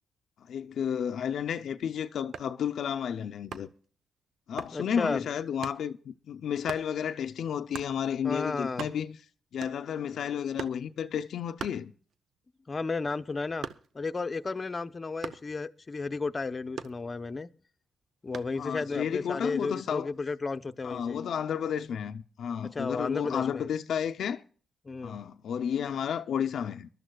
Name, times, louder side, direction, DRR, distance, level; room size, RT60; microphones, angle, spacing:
voice 1, 0.5-3.7 4.5-9.2 9.5-11.9 18.6-20.1 20.8-24.4 25.0-26.9, left 8 dB, 80° left, 0.5 m, -32 dB
sound 1, 2.3-2.6 3.5-3.8 4.6-4.8 5.6-5.8 6.7-6.9 7.7-8.0 8.4-8.5 8.7-9.2 9.6-10.0 10.6-10.9 11.6-12.3 12.7-14.1 15.2-15.5 16.8-17.4 18.3-18.6, right 7 dB, 75° right, 0.7 m, -41 dB
voice 2, 4.7-5.2 8.2-8.9 12.7-13.7 13.9-17.5 18.2-21.2 22.7-23.7 24.8-25.2, left 4 dB, 35° left, 0.7 m, -33 dB
23.5 x 12.0 x 2.3 m
cardioid pair, 65°, 0 cm